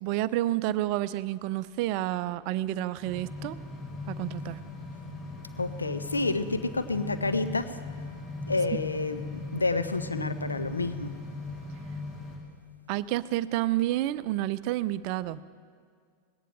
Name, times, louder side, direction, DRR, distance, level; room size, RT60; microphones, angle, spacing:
voice 1, 0.0-3.6 4.1-4.6 12.9-15.4, right 15 dB, 45° right, 16 dB, 0.4 m, -29 dB
sound 1, 3.0-12.4, left 3 dB, 30° left, 3.3 m, -39 dB
voice 2, 5.6-7.7 8.5-9.2 9.5-11.1, left 3 dB, 80° left, 10 dB, 0.8 m, -29 dB
19.5 x 17.5 x 3.4 m, 2.1 s
figure-of-eight pair, 90°, 0 cm